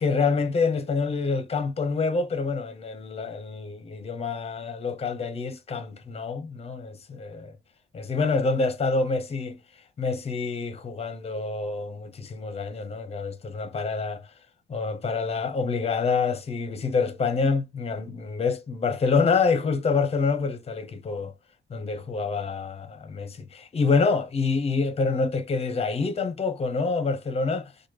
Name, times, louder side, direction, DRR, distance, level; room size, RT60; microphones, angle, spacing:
voice 1, 0.0-7.6 7.9-9.6 10.0-14.2 14.7-21.3 21.7-27.7, left 4 dB, 35° left, 0.7 m, -27 dB
3.0 x 2.2 x 3.0 m
cardioid pair, 90°, 19 cm